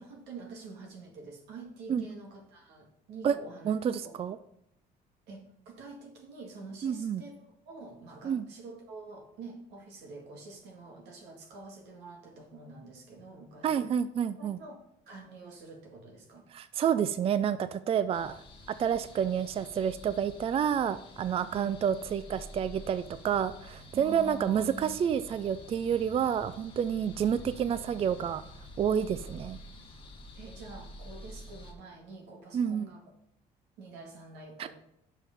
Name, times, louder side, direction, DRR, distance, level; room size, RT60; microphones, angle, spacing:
voice 1, 0.0-3.7 4.0-4.2 5.3-13.9 14.4-14.8 15.1-16.5 21.5-21.7 23.9-25.0 30.4-33.0 33.8-34.7, right 3 dB, 90° right, 2 dB, 2.0 m, -47 dB
voice 2, 3.7-4.4 6.8-7.2 8.2-8.5 13.6-14.6 16.5-28.4 28.8-29.6 32.5-32.9 34.6-34.7, right 8 dB, 35° right, 13 dB, 0.4 m, -29 dB
sound 1, 18.1-31.7, left 1 dB, 30° left, 1.4 m, -49 dB
6.4 x 5.6 x 5.2 m, 0.79 s
cardioid pair, 110°, 17 cm